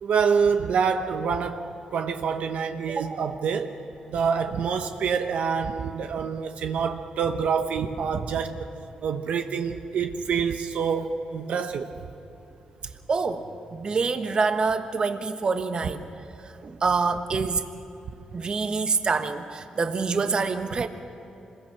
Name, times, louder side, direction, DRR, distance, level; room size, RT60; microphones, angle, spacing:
voice 1, 0.0-3.7 4.1-8.7 9.0-11.9, right 6 dB, 75° right, 6 dB, 1.0 m, -26 dB
voice 2, 2.9-3.2 13.1-16.0 16.4-17.6 18.3-20.9, right 4 dB, 40° right, 8 dB, 1.2 m, -26 dB
26.0 x 21.5 x 5.9 m, 2.9 s
cardioid pair, 110°, 2 cm